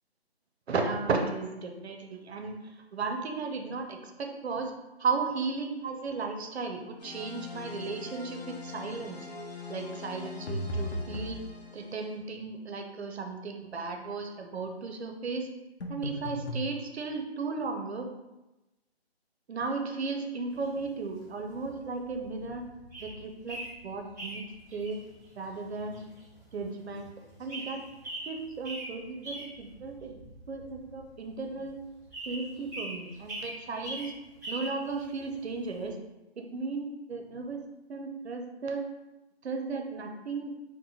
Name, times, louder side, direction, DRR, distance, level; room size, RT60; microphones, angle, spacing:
voice 1, 0.7-4.7 5.0-9.3 9.7-11.4 11.7-15.5 15.9-18.1 19.5-22.6 23.0-24.5 24.7-25.0 25.4-26.1 26.5-27.1 27.4-27.8 28.3-30.2 30.5-31.8 32.3-34.1 34.5-36.0 36.4-37.6 37.9-38.9 39.4-40.5, right 4 dB, 80° right, 3 dB, 0.6 m, -35 dB
sound 1, 7.0-12.2, left 5 dB, 40° left, 0.6 m, -43 dB
sound 2, 10.5-11.4 15.8-16.7, equal, 80° left, 0.8 m, -34 dB
sound 3, 20.5-35.9, right 1 dB, 20° right, 0.7 m, -43 dB
2.8 x 2.2 x 3.9 m, 1.0 s
hypercardioid pair, 175°, 32 cm